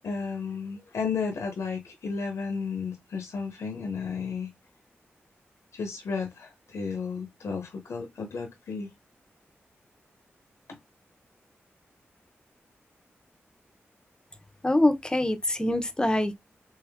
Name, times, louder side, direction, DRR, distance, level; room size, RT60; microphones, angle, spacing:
voice 1, 0.0-4.5 5.7-8.9 10.7-10.8, left 5 dB, 85° left, 0.7 m, -33 dB
voice 2, 14.6-16.4, left 1 dB, 15° left, 0.8 m, -24 dB
3.3 x 2.8 x 3.5 m
cardioid pair, 55°, 5 cm